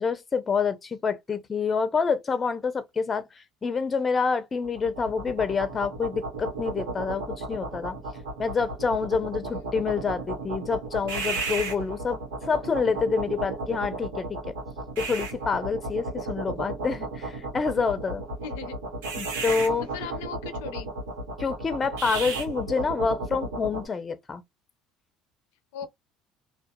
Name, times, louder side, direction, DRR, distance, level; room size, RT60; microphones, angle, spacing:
voice 1, 0.0-3.2 3.6-8.0 8.4-14.5 15.0-18.2 19.2-19.9 21.4-24.4, left 5 dB, 30° left, 0.6 m, -27 dB
sound 1, 4.6-23.9, right 2 dB, 90° right, 1.0 m, -34 dB
voice 2, 18.4-18.8 19.9-20.9 25.7-25.9, left 8 dB, 85° left, 0.4 m, -38 dB
2.3 x 2.2 x 2.6 m
supercardioid pair, 85°, 0 cm